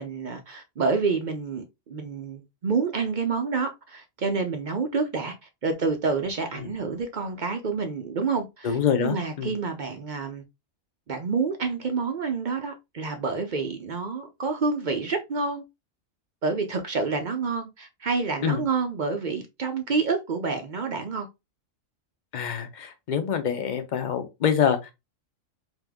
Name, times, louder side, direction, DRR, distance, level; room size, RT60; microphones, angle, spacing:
voice 1, 0.0-5.4 5.6-10.4 11.1-15.6 16.4-21.3, right 4 dB, 50° right, 0.6 m, -28 dB
voice 2, 8.6-9.5 18.4-18.6 22.3-24.9, left 8 dB, 45° left, 0.8 m, -26 dB
3.5 x 2.8 x 3.5 m
omnidirectional pair, 1.3 m